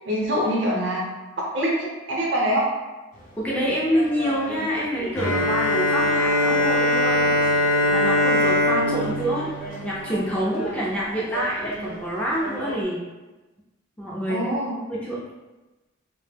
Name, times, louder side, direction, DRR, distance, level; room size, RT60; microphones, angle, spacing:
voice 1, 0.0-1.0 1.5-2.7 14.3-14.7, equal, 65° right, -3 dB, 0.7 m, -24 dB
sound 1, 3.1-12.8, right 1 dB, 40° left, 0.6 m, -36 dB
voice 2, 3.4-7.5 7.9-9.5 9.8-13.0 14.0-14.5 14.9-15.2, equal, 5° left, -6 dB, 0.3 m, -27 dB
Bowed string instrument, 5.2-10.6, left 1 dB, 85° left, 0.5 m, -22 dB
2.1 x 2.0 x 3.2 m, 1.1 s
head